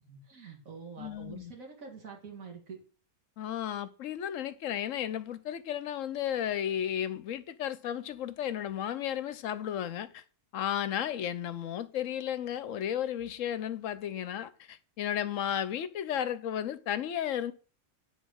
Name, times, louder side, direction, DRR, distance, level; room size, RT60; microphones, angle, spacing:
voice 1, 0.0-2.8, right 5 dB, 65° right, 2.4 m, -46 dB
voice 2, 1.0-1.5 3.4-10.2 10.5-17.5, left 10 dB, 65° left, 1.0 m, -34 dB
9.2 x 4.4 x 6.3 m
omnidirectional pair, 1.5 m